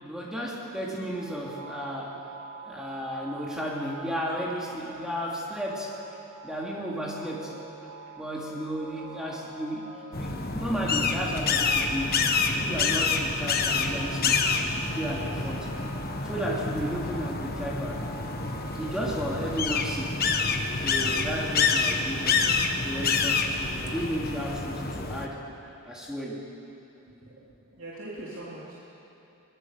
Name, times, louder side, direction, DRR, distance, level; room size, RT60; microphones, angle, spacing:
voice 1, 0.0-2.2 2.7-6.2 6.4-7.5 8.2-9.9 10.2-12.2 12.6-15.7 16.2-18.1 18.8-20.2 20.8-22.4 22.8-25.4 25.8-26.4, equal, 5° right, -4 dB, 3.1 m, -33 dB
sound 1, 1.1-20.0, right 4 dB, 45° right, 4.4 m, -46 dB
sound 2, 10.1-25.3, left 4 dB, 45° left, 1.3 m, -27 dB
voice 2, 27.0-27.5 27.7-28.7, right 1 dB, 65° right, -7 dB, 3.3 m, -41 dB
23.0 x 21.5 x 6.7 m, 2.8 s
head